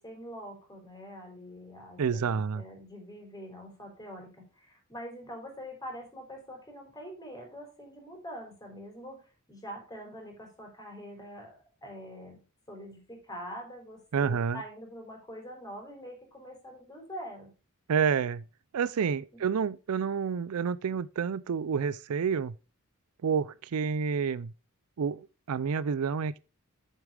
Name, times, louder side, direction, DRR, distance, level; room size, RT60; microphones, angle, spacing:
voice 1, 0.0-9.2 9.5-12.4 12.7-17.5 19.3-19.4, equal, 20° left, 3.7 m, -44 dB
voice 2, 2.0-2.6 14.1-14.6 17.9-18.4 18.7-22.5 23.2-24.5 25.0-26.4, right 6 dB, 85° right, 0.4 m, -29 dB
7.3 x 6.7 x 4.8 m
head